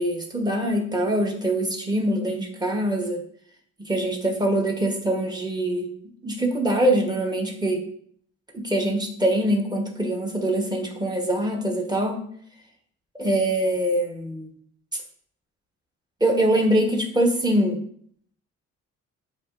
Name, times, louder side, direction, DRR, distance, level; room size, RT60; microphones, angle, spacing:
voice 1, 0.0-3.2 3.8-5.9 6.2-7.8 8.5-12.2 13.2-14.5 16.2-17.8, right 1 dB, 15° right, 0 dB, 1.0 m, -23 dB
7.6 x 2.8 x 2.5 m, 0.62 s
cardioid pair, 90°, 30 cm